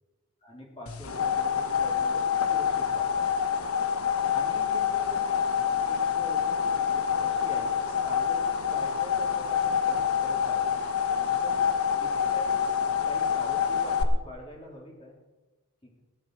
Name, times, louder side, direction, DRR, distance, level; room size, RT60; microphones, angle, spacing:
voice 1, 0.4-3.3 4.3-5.3 5.9-10.7 11.4-11.6 12.0-15.2 15.8-15.9, left 1 dB, 25° left, -2 dB, 3.7 m, -45 dB
sound 1, 0.9-14.0, left 7 dB, 80° left, 1.1 m, -27 dB
17.5 x 10.5 x 4.9 m, 1.2 s
head